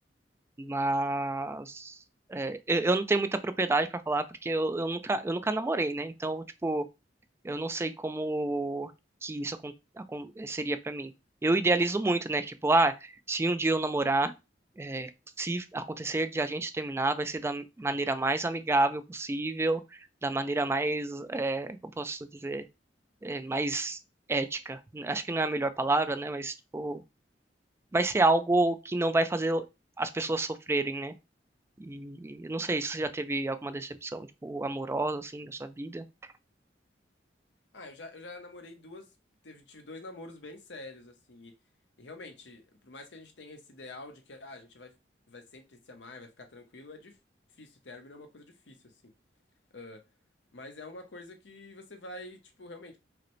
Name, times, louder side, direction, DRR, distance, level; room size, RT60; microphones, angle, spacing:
voice 1, 0.6-2.0 2.3-6.8 7.4-8.9 9.2-11.1 11.4-14.3 14.8-15.1 15.4-22.6 23.2-24.0 24.3-27.0 27.9-29.7 30.0-31.1 31.8-36.0, right 2 dB, 15° right, 0.3 m, -29 dB
voice 2, 37.7-39.1 39.4-41.5 42.0-44.9 45.3-47.2 47.6-49.1 49.7-50.0 50.5-53.0, left 2 dB, 85° left, 0.9 m, -47 dB
4.9 x 2.1 x 3.1 m
head